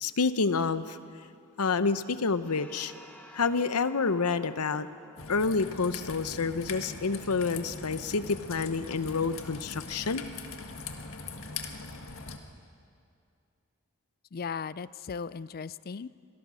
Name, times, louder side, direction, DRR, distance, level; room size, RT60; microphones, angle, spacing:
voice 1, 0.0-1.0 1.6-2.9 3.3-4.9 5.3-10.2, left 4 dB, 85° left, 13 dB, 0.8 m, -28 dB
sound 1, 2.4-7.2, equal, 5° left, 1.6 m, -53 dB
Raindrop / Trickle dribble, 5.2-12.4, left 4 dB, 65° left, 1.7 m, -41 dB
voice 2, 14.3-16.1, left 5 dB, 45° left, 18 dB, 0.4 m, -37 dB
26.0 x 18.5 x 6.3 m, 2.5 s
head